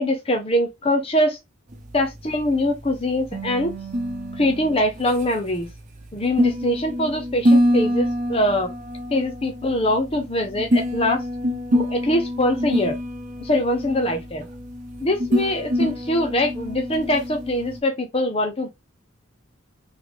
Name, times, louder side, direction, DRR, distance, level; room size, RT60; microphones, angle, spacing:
voice 1, 0.0-1.4 1.9-3.7 4.4-5.7 6.1-8.7 9.1-11.2 11.7-13.0 13.4-14.4 15.0-18.7, left 1 dB, 25° left, 0.6 m, -23 dB
sound 1, 1.7-17.8, equal, 35° right, 0.9 m, -25 dB
3.6 x 3.2 x 3.5 m
head